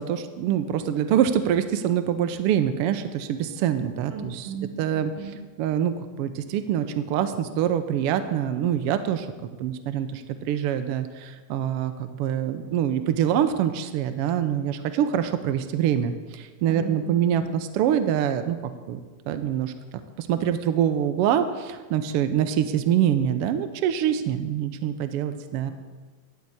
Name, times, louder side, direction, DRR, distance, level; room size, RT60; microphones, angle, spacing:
voice 1, 0.0-4.4 4.8-5.1 5.6-19.0 19.3-19.7 20.2-25.7, right 9 dB, 85° right, 9 dB, 1.3 m, -25 dB
voice 2, 4.1-5.4 16.7-17.5 25.6-25.7, right 5 dB, 55° right, -1 dB, 2.8 m, -37 dB
12.0 x 5.3 x 8.4 m, 1.3 s
omnidirectional pair, 3.3 m